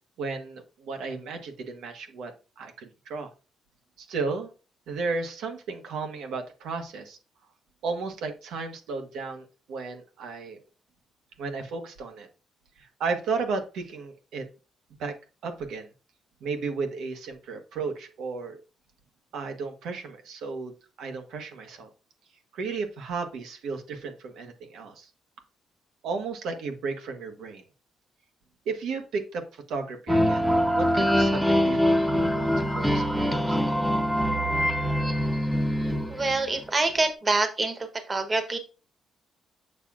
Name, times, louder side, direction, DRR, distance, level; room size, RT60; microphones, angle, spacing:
voice 1, 0.2-3.3 4.0-4.5 4.9-7.2 7.8-10.6 11.4-12.3 12.8-14.4 15.0-15.1 15.4-15.9 16.4-18.6 19.3-21.9 22.5-25.1 26.0-27.6 28.7-30.4 30.7-33.6, right 4 dB, 80° right, 5 dB, 1.1 m, -34 dB
sound 1, 30.1-36.7, equal, ahead, 0.7 m, -24 dB
voice 2, 36.1-37.8 38.1-38.6, right 3 dB, 25° right, 7 dB, 1.0 m, -25 dB
7.2 x 6.6 x 2.5 m, 0.33 s
cardioid pair, 135°, 0 cm